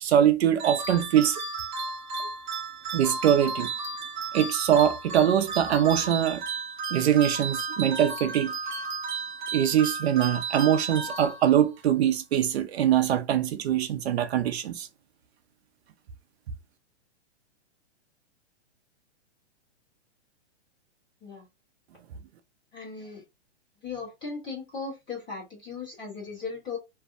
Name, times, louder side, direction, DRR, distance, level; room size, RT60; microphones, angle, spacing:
voice 1, 0.0-1.4 2.9-3.7 4.3-6.4 6.9-8.5 9.5-14.9, right 10 dB, 65° right, 0.5 m, -23 dB
Random Music box sound, 0.6-11.8, right 4 dB, 45° right, 0.8 m, -34 dB
voice 2, 22.7-23.2 23.8-26.8, left 4 dB, 15° left, 1.1 m, -37 dB
2.6 x 2.1 x 2.5 m
hypercardioid pair, 165°, 34 cm